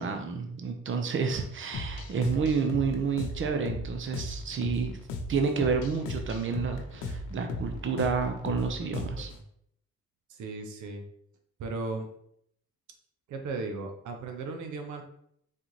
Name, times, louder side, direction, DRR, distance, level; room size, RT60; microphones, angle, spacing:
voice 1, 0.0-5.0 5.3-9.3, right 5 dB, 40° right, 5 dB, 0.8 m, -30 dB
sound 1, 1.7-9.4, left 2 dB, 80° left, 0.7 m, -37 dB
voice 2, 10.3-11.0 11.6-12.1 13.3-15.0, right 3 dB, 75° right, 5 dB, 0.8 m, -36 dB
4.2 x 3.9 x 3.1 m, 0.70 s
cardioid pair, 90°, 30 cm